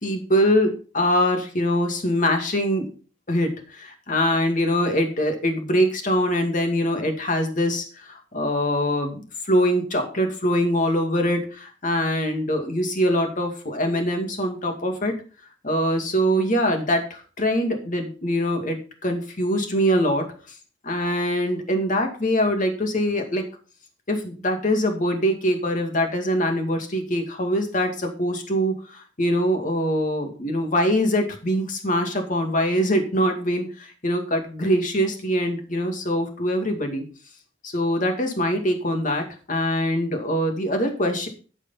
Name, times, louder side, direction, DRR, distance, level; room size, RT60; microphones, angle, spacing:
voice 1, 0.0-2.9 3.3-3.5 3.8-9.2 9.5-15.1 15.6-20.2 20.8-23.4 24.1-33.7 34.0-37.0 37.6-41.3, equal, 45° left, 4 dB, 2.3 m, -23 dB
13.0 x 5.0 x 5.6 m, 0.38 s
head